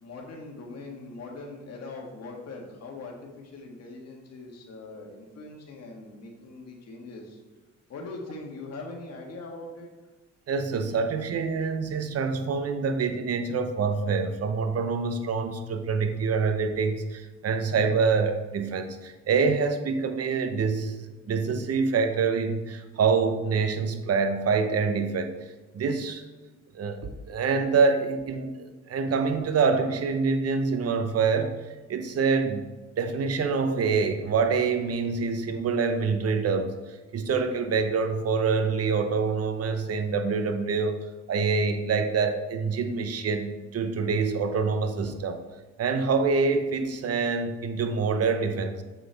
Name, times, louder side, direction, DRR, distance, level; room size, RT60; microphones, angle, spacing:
voice 1, 0.0-7.4 7.9-9.9, left 3 dB, 55° left, 0 dB, 1.7 m, -41 dB
voice 2, 10.5-21.0 21.3-25.3 25.7-26.2 26.7-31.5 31.9-32.6 33.0-36.7 37.1-40.9 41.3-45.4 45.8-48.8, right 5 dB, 55° right, 7 dB, 0.9 m, -26 dB
7.6 x 6.0 x 3.5 m, 1.2 s
cardioid pair, 90°, 30 cm